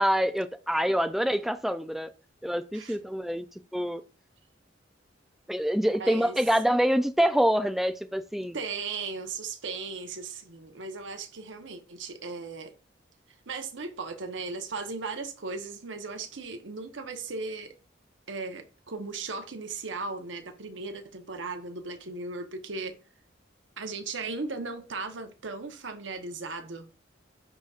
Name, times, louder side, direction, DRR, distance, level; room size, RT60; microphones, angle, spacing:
voice 1, 0.0-2.1 2.4-3.5 3.7-4.0 5.5-8.6, equal, ahead, 0.3 m, -26 dB
voice 2, 6.0-6.4 8.5-12.7 13.5-17.8 18.3-23.0 23.8-26.9, right 4 dB, 80° right, 1.0 m, -37 dB
11.0 x 4.1 x 2.4 m
head